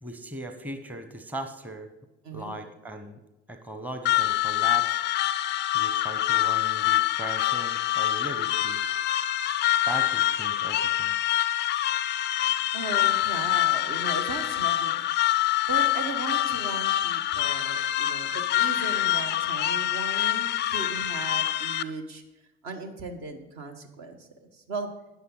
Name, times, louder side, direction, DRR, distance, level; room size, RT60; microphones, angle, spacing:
voice 1, 0.0-1.9 2.3-3.2 3.5-5.1 5.7-8.8 9.8-11.1, right 1 dB, 5° right, 7 dB, 0.9 m, -38 dB
voice 2, 2.2-2.6 12.7-15.1 15.6-22.2 22.6-24.9, right 3 dB, 55° right, 6 dB, 1.3 m, -37 dB
sound 1, 4.0-21.8, left 13 dB, 35° left, 0.4 m, -25 dB
12.5 x 9.4 x 3.8 m, 1.0 s
figure-of-eight pair, 55°, 33 cm